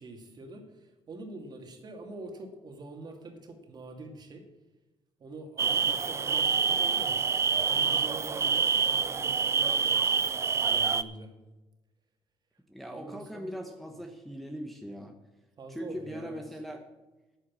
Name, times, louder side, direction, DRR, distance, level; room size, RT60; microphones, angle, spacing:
voice 1, 0.0-4.4 5.2-10.3 10.5-11.3 12.9-14.0 15.6-16.4, right 2 dB, 40° right, 4 dB, 2.2 m, -45 dB
sound 1, 5.6-11.0, right 6 dB, 25° right, 0.5 m, -26 dB
voice 2, 12.7-15.1 15.7-16.8, equal, ahead, 3 dB, 1.0 m, -40 dB
9.6 x 9.3 x 7.4 m, 1.1 s
cardioid pair, 120°, 10 cm